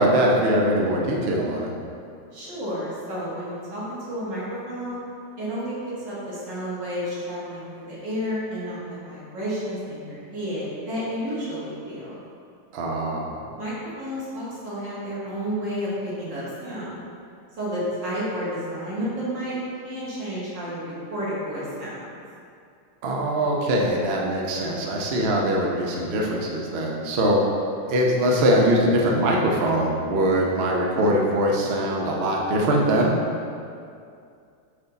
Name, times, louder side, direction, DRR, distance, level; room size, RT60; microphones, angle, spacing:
voice 1, 0.0-1.7 12.7-13.3 23.0-27.4 27.9-33.1, right 1 dB, 85° right, -2 dB, 0.5 m, -22 dB
voice 2, 2.3-5.0 5.4-5.8 6.0-12.2 13.6-17.0 17.6-19.6 19.8-22.1, equal, 55° right, -8 dB, 2.3 m, -31 dB
6.2 x 5.6 x 4.0 m, 2.4 s
omnidirectional pair, 2.3 m